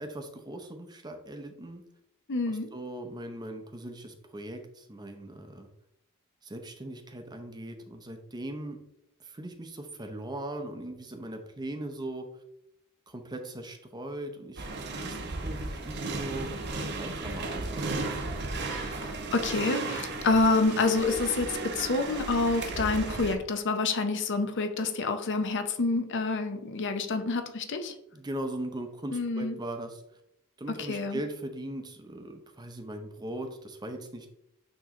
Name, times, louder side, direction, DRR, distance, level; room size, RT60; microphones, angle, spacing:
voice 1, 0.0-1.8 2.5-5.7 6.4-8.8 9.2-12.3 13.1-16.5 17.0-17.9 28.1-30.0 30.6-34.3, right 1 dB, 20° right, 5 dB, 0.7 m, -39 dB
voice 2, 2.3-2.7 18.7-27.9 29.1-29.5 30.8-31.2, left 3 dB, 55° left, 7 dB, 0.7 m, -28 dB
sound 1, 14.6-23.3, right 3 dB, 50° right, 0.8 m, -35 dB
9.0 x 3.1 x 3.6 m, 0.80 s
head